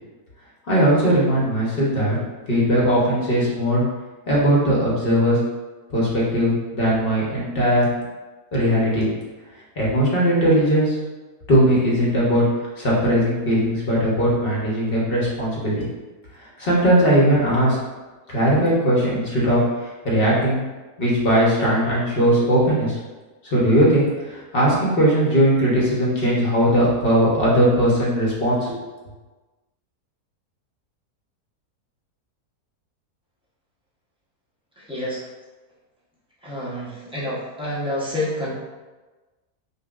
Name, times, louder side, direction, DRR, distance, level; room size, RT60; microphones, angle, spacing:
voice 1, 0.7-2.2 2.5-3.8 4.3-5.4 5.9-7.9 8.5-9.1 9.8-11.0 11.5-12.4 12.8-15.8 16.6-17.8 18.3-19.6 20.0-20.6 21.0-23.0 23.5-28.8, equal, 45° left, -5 dB, 0.8 m, -19 dB
voice 2, 34.8-35.3 36.4-38.5, left 1 dB, 10° right, -9 dB, 0.3 m, -28 dB
5.5 x 2.3 x 2.3 m, 1.2 s
omnidirectional pair, 1.7 m